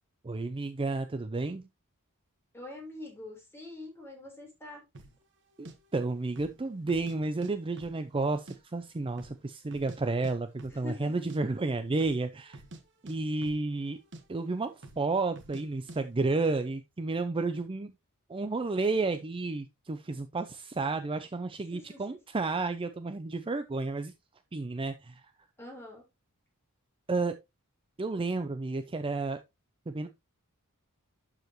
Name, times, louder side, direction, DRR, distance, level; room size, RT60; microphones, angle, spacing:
voice 1, 0.2-1.7 5.6-12.6 13.0-14.0 14.3-17.9 18.3-24.1 24.5-25.2 27.1-27.4 28.0-29.4 29.9-30.1, right 3 dB, 25° right, 0.5 m, -31 dB
voice 2, 2.5-4.8 10.7-11.2 21.7-22.2 25.6-26.0, left 2 dB, 10° left, 4.0 m, -45 dB
sound 1, 4.9-5.2 5.6-5.7 6.3-6.6 6.9-7.5 7.8-8.6 8.8-8.9 9.2-10.0 10.2-10.3 10.6-10.8 11.1-11.4 11.9-12.2 12.5-13.9 14.1-14.2 14.8-15.1 15.4-15.6 15.9-16.0, right 2 dB, 55° right, 1.5 m, -47 dB
11.5 x 4.9 x 3.0 m
head